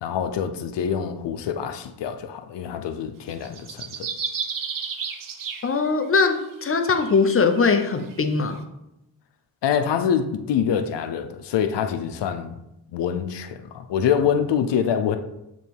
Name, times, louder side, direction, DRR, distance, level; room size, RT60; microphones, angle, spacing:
voice 1, 0.0-4.1 9.6-12.5 12.9-15.2, left 8 dB, 90° left, 0.6 m, -25 dB
sound 1, 3.3-6.3 6.8-8.4, right 6 dB, 50° right, 0.7 m, -33 dB
voice 2, 5.6-8.6, left 4 dB, 35° left, 0.6 m, -21 dB
7.0 x 3.1 x 4.6 m
wide cardioid pair, 115°, 41 cm